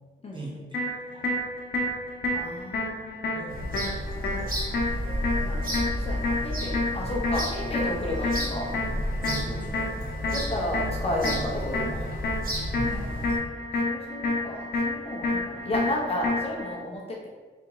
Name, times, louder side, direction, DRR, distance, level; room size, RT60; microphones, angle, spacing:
voice 1, 0.3-1.4 3.3-4.6 7.0-7.2 9.2-9.9 12.7-13.1, right 1 dB, 25° right, -5 dB, 1.0 m, -40 dB
sound 1, 0.7-16.7, left 2 dB, 65° left, 0.8 m, -30 dB
voice 2, 2.3-3.4 5.4-8.7 10.3-12.0 13.8-17.3, left 1 dB, 30° left, -3 dB, 0.6 m, -32 dB
sound 2, 3.5-13.4, equal, 50° right, 0.9 m, -32 dB
4.1 x 2.9 x 3.8 m, 1.4 s
wide cardioid pair, 170°, 19 cm